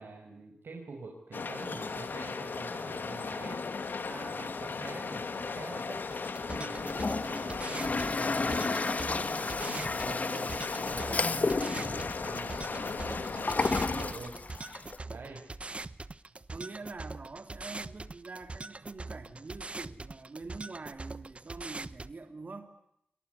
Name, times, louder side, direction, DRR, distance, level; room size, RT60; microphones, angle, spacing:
voice 1, 0.0-3.6 4.1-6.0 6.6-14.3 15.1-15.4, right 4 dB, 85° right, 1 dB, 6.1 m, -46 dB
sound 1, 1.3-14.1, left 4 dB, 70° left, 2.8 m, -37 dB
voice 2, 4.0-4.8 6.5-7.1 16.5-22.7, right 3 dB, 50° right, 7 dB, 3.3 m, -45 dB
sound 2, 6.1-22.1, right 3 dB, 35° right, 1.2 m, -43 dB
Toilet flush, 6.8-15.0, left 3 dB, 45° left, 1.5 m, -33 dB
28.5 x 24.5 x 8.3 m, 0.78 s
wide cardioid pair, 100°, 4 cm